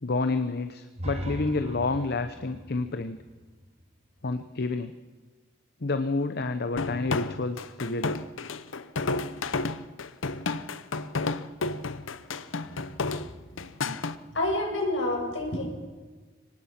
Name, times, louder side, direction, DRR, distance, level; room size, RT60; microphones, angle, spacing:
voice 1, 0.0-3.2 4.2-4.9 5.8-8.2, left 3 dB, 55° left, 9 dB, 0.9 m, -29 dB
sound 1, 0.9-4.8, equal, 35° right, 2.0 m, -39 dB
sound 2, 6.8-14.2, left 3 dB, 90° left, 0.9 m, -31 dB
voice 2, 14.3-15.6, left 1 dB, 75° left, -1 dB, 7.0 m, -27 dB
24.0 x 19.0 x 5.9 m, 1.4 s
head